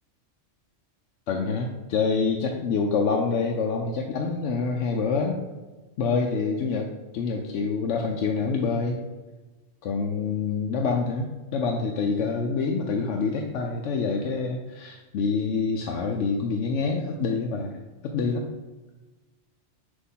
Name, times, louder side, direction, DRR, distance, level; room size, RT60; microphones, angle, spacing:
voice 1, 1.3-5.4 6.0-9.0 9.8-18.4, left 4 dB, 75° left, 2 dB, 0.9 m, -26 dB
6.1 x 2.9 x 5.5 m, 1.2 s
omnidirectional pair, 1.2 m